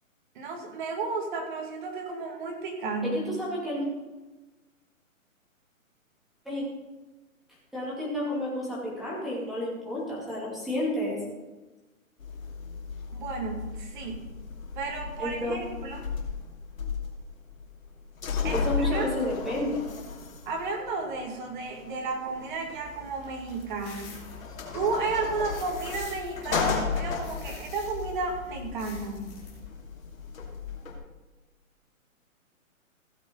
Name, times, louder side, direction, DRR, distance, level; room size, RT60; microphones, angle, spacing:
voice 1, 0.4-3.2 13.2-14.3 14.7-16.1 18.4-19.1 20.5-24.2 24.7-29.4, right 3 dB, 35° right, 1 dB, 2.1 m, -33 dB
voice 2, 3.1-3.9 6.4-6.6 7.7-11.2 15.2-15.6 18.5-19.8, left 1 dB, ahead, -7 dB, 2.6 m, -30 dB
sound 1, 12.2-31.0, left 5 dB, 75° left, 2.8 m, -35 dB
sound 2, 22.7-29.6, left 4 dB, 25° left, 3.1 m, -47 dB
15.5 x 8.1 x 3.9 m, 1.2 s
hypercardioid pair, 160°, 41 cm